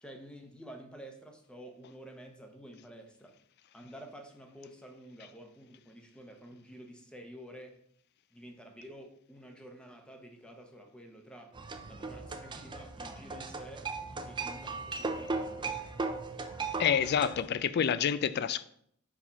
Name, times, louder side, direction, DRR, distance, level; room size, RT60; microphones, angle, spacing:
voice 1, 0.0-3.3 3.7-7.7 8.3-11.5 11.9-13.9 14.3-15.9, right 1 dB, 5° left, 0.8 m, -50 dB
sound 1, 11.5-17.5, right 3 dB, 20° right, 0.5 m, -37 dB
voice 2, 16.8-18.6, left 8 dB, 50° left, 0.3 m, -28 dB
4.7 x 4.2 x 5.6 m
head